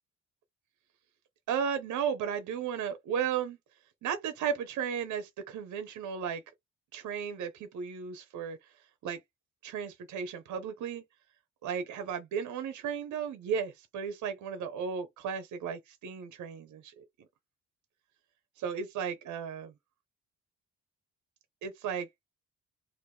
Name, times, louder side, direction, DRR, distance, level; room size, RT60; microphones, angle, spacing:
voice 1, 1.5-3.6 4.0-6.4 6.9-8.6 9.0-9.2 9.6-11.0 11.6-17.0 18.6-19.7 21.6-22.1, right 7 dB, 75° right, 0.8 m, -34 dB
2.9 x 2.5 x 3.4 m
cardioid pair, 90°, 30 cm